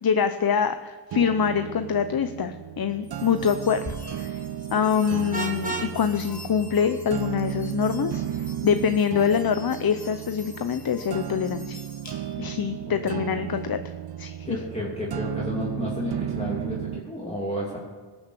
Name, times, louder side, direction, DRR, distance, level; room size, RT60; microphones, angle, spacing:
voice 1, 0.0-3.8 4.2-4.4 4.7-11.8 12.4-13.8 14.2-14.6, left 7 dB, 55° left, 9 dB, 0.7 m, -25 dB
sound 1, 1.1-17.1, right 10 dB, 60° right, 0.5 m, -34 dB
sound 2, 3.0-12.6, left 1 dB, 40° left, 1.9 m, -46 dB
Vehicle horn car horn honking, 5.3-5.9, right 3 dB, 20° right, 1.6 m, -30 dB
voice 2, 14.4-17.8, equal, 15° left, -5 dB, 2.9 m, -32 dB
18.0 x 7.2 x 6.7 m, 1.5 s
wide cardioid pair, 90°, 43 cm